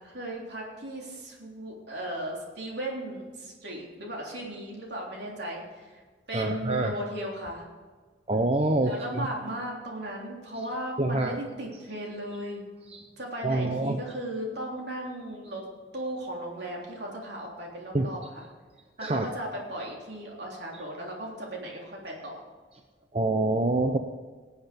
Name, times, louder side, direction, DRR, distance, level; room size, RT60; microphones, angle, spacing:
voice 1, 0.0-6.0 6.3-7.7 8.8-12.7 13.2-15.7 15.9-18.4 19.0-22.4, right 1 dB, 60° right, -2 dB, 3.6 m, -36 dB
voice 2, 6.3-6.9 8.3-9.3 11.0-11.4 12.9-13.0 13.4-14.0 17.9-18.1 19.0-19.3 23.1-24.0, right 2 dB, 30° right, 4 dB, 0.7 m, -26 dB
19.0 x 8.2 x 5.3 m, 1.4 s
head